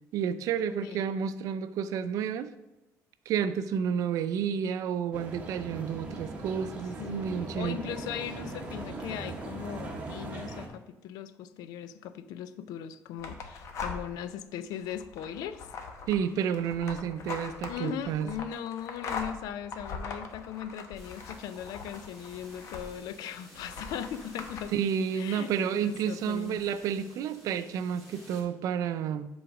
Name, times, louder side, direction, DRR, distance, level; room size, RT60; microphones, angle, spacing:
voice 1, 0.1-2.5 3.3-7.8 16.1-18.3 24.7-29.3, right 8 dB, 60° right, 12 dB, 0.5 m, -30 dB
voice 2, 0.8-1.1 7.0-15.6 17.7-24.7 25.1-26.6, left 9 dB, 85° left, 13 dB, 0.5 m, -39 dB
sound 1, 5.1-10.7, right 2 dB, 20° right, 1.0 m, -40 dB
sound 2, 13.2-14.3 14.7-23.1 23.6-24.6, left 4 dB, 50° left, 0.9 m, -41 dB
sound 3, 20.9-28.4, equal, ahead, 2.4 m, -54 dB
7.9 x 3.9 x 6.0 m, 0.99 s
cardioid pair, 175°, 6 cm